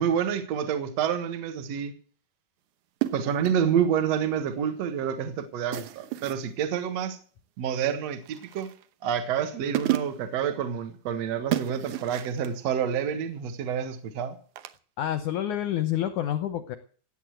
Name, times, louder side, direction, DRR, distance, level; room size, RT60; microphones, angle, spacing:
voice 1, 0.0-1.9 3.1-7.2 7.6-8.7 9.0-14.4, right 8 dB, 55° right, 8 dB, 2.1 m, -28 dB
sound 1, 3.0-3.6 5.7-6.5 8.3-8.9 9.4-9.5 9.7-10.3 11.5-12.5 14.6-14.8, right 14 dB, 75° right, 1.9 m, -31 dB
voice 2, 15.0-16.8, left 11 dB, 70° left, 10 dB, 1.9 m, -28 dB
17.0 x 9.0 x 7.8 m, 0.43 s
omnidirectional pair, 4.6 m